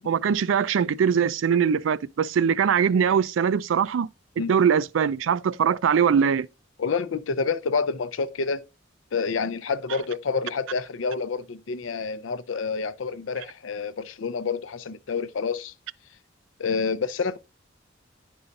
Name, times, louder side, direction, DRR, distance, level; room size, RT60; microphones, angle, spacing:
voice 1, 0.0-4.1 4.5-6.5, right 7 dB, 80° right, 0.4 m, -22 dB
voice 2, 6.8-8.6 9.1-15.7 16.6-17.4, left 5 dB, 85° left, 0.5 m, -28 dB
9.7 x 5.5 x 2.5 m
head